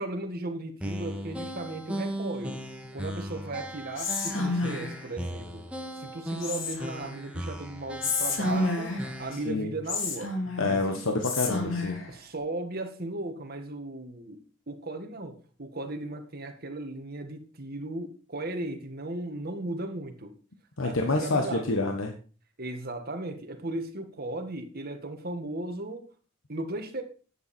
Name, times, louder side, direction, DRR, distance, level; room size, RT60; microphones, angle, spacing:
voice 1, 0.0-2.6 2.9-5.6 6.0-11.0 12.1-20.3 20.8-21.8 22.6-26.1 26.5-27.0, right 2 dB, 50° right, 6 dB, 1.7 m, -36 dB
sound 1, 0.8-9.5, right 1 dB, 5° right, 1.6 m, -37 dB
Whispering, 4.0-5.1 6.4-7.1 8.0-9.2 9.9-10.8 11.2-12.1, left 3 dB, 70° left, 2.8 m, -30 dB
voice 2, 10.6-12.0 20.8-22.1, left 2 dB, 90° left, 3 dB, 1.3 m, -27 dB
11.0 x 9.1 x 4.3 m, 0.38 s
head